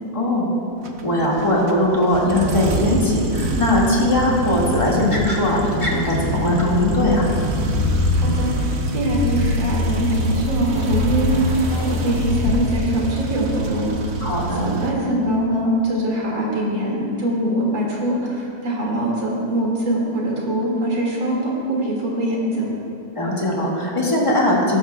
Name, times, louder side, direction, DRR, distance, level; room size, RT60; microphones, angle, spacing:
voice 1, 0.1-0.5 1.0-7.3 14.2-14.7 23.2-24.8, left 1 dB, 15° left, -5 dB, 1.9 m, -19 dB
sound 1, 0.8-14.9, right 2 dB, 50° right, 0.8 m, -26 dB
sound 2, 4.2-12.5, left 5 dB, 70° left, 1.0 m, -26 dB
voice 2, 8.1-14.0 14.6-22.7, right 1 dB, 75° right, -4 dB, 3.0 m, -23 dB
16.0 x 12.0 x 2.3 m, 2.6 s
omnidirectional pair, 2.1 m